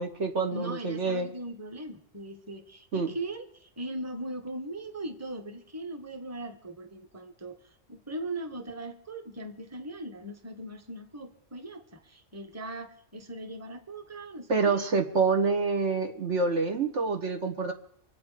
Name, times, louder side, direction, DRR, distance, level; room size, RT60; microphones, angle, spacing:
voice 1, 0.0-1.3 2.9-3.1 14.5-17.7, right 4 dB, 70° right, 4 dB, 1.7 m, -27 dB
voice 2, 0.5-14.9, right 1 dB, 15° right, 5 dB, 1.2 m, -39 dB
25.5 x 8.5 x 5.0 m, 0.67 s
omnidirectional pair, 1.3 m